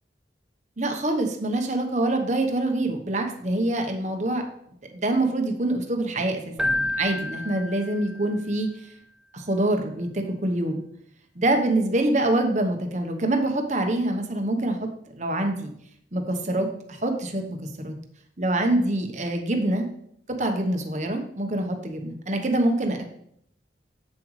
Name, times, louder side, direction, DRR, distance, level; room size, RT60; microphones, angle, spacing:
voice 1, 0.8-4.4 4.9-8.7 9.3-10.8 11.4-15.7 16.1-17.9 18.4-19.9 20.3-23.1, right 1 dB, 40° right, 4 dB, 1.0 m, -25 dB
Keyboard (musical), 6.6-8.4, left 1 dB, 5° right, 0.4 m, -29 dB
7.7 x 7.6 x 3.2 m, 0.69 s
head